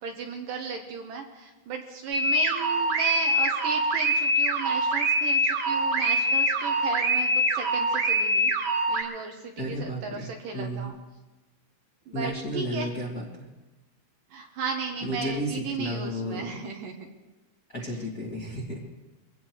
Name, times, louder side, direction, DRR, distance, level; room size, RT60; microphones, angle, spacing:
voice 1, 0.0-8.5 8.9-10.9 12.1-12.9 14.3-17.1 17.8-18.1, right 5 dB, 70° right, 2 dB, 2.5 m, -35 dB
sound 1, 2.1-9.0, right 1 dB, 45° right, 2.8 m, -24 dB
voice 2, 9.6-10.9 12.1-13.5 15.0-16.6 17.7-18.8, equal, 30° left, -6 dB, 2.4 m, -33 dB
24.0 x 17.0 x 3.2 m, 1.1 s
omnidirectional pair, 4.6 m